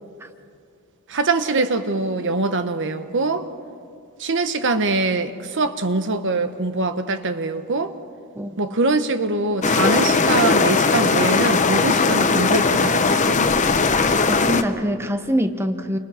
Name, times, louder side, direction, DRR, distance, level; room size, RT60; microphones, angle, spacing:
voice 1, 1.1-3.5 4.2-7.9 8.6-13.4, right 3 dB, 60° right, 9 dB, 1.2 m, -23 dB
sound 1, 9.6-14.6, left 4 dB, 35° left, 0.9 m, -18 dB
voice 2, 14.4-16.0, equal, 10° right, 7 dB, 0.8 m, -24 dB
29.5 x 26.0 x 4.4 m, 2.3 s
head